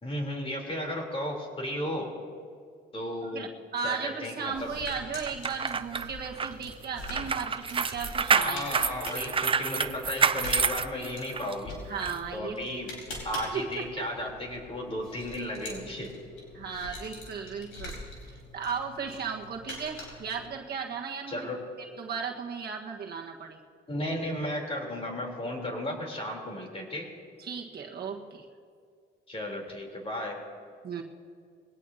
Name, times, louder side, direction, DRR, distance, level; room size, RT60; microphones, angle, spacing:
voice 1, 0.0-2.1 2.9-3.5 3.8-4.7 8.3-11.8 12.3-12.9 13.2-16.1 21.3-21.6 23.9-27.1 29.3-30.4, left 1 dB, 30° left, 0 dB, 3.6 m, -34 dB
voice 2, 3.2-8.7 11.9-12.6 13.5-14.1 16.5-21.5 22.0-23.6 27.4-28.5 30.8-31.0, right 6 dB, 55° right, 0 dB, 1.5 m, -36 dB
sound 1, 4.4-20.5, left 2 dB, 85° left, 4.6 m, -44 dB
sound 2, 5.3-11.5 12.0-12.2, right 6 dB, 25° right, 0.5 m, -28 dB
21.5 x 17.5 x 2.8 m, 2.2 s
cardioid pair, 90°, 20 cm